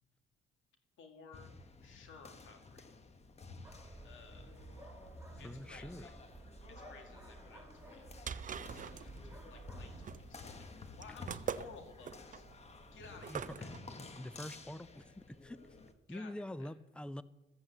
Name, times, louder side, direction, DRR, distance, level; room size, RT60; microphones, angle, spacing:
voice 1, 1.0-1.5 1.8-2.9 4.0-4.6 5.4-6.1 6.7-8.0 8.7-12.4 12.9-13.7 16.1-16.7, left 4 dB, 75° left, 5 dB, 2.0 m, -56 dB
sound 1, 1.3-15.9, left 3 dB, 35° left, 1.3 m, -53 dB
sound 2, 3.6-10.0, right 2 dB, 10° right, 1.6 m, -53 dB
voice 2, 5.4-6.1 13.3-13.4 14.0-15.7 16.1-17.2, left 1 dB, 5° left, 16 dB, 0.5 m, -45 dB
sound 3, 7.8-13.8, right 7 dB, 40° right, 0.6 m, -44 dB
14.0 x 7.9 x 7.9 m, 1.0 s
cardioid pair, 90°, 20 cm